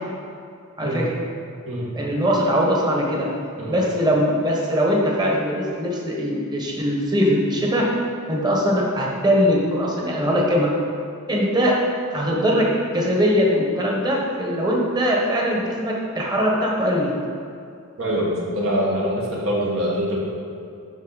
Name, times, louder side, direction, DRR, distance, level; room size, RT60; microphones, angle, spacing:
voice 1, 0.8-1.2 1.9-3.3 3.7-7.9 8.3-10.7 11.3-11.8 12.1-17.1, equal, 20° right, -3 dB, 1.2 m, -21 dB
voice 2, 18.0-20.2, equal, 70° right, -4 dB, 1.5 m, -24 dB
12.0 x 4.2 x 4.0 m, 2.5 s
head